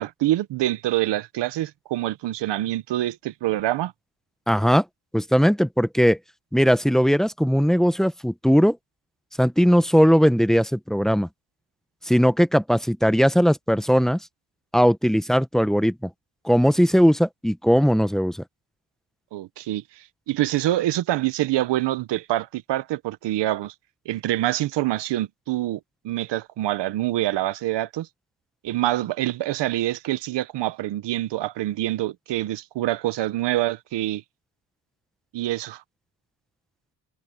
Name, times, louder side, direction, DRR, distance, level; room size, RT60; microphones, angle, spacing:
voice 1, 0.0-3.9 19.3-23.7 24.0-25.8 26.0-28.1 28.6-34.2 35.3-35.8, right 15 dB, 90° right, 1.0 m, -26 dB
voice 2, 4.5-4.8 5.1-6.2 6.5-8.8 9.4-11.3 12.0-14.2 14.7-16.1 16.4-18.4, equal, ahead, 0.8 m, -19 dB
cardioid pair, 105°, 41 cm